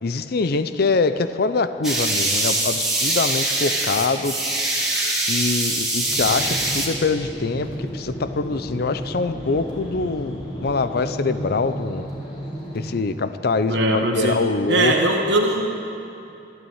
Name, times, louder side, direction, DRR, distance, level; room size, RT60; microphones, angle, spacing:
voice 1, 0.0-4.3 5.3-12.1 12.7-14.9, left 3 dB, 60° left, 12 dB, 0.6 m, -24 dB
sound 1, 1.8-6.9, right 2 dB, 5° right, 2.6 m, -23 dB
sound 2, 6.0-12.9, equal, 30° left, 3.9 m, -33 dB
voice 2, 13.7-14.4 14.7-15.7, right 2 dB, 70° right, 1 dB, 1.2 m, -20 dB
12.5 x 12.0 x 8.7 m, 2.7 s
head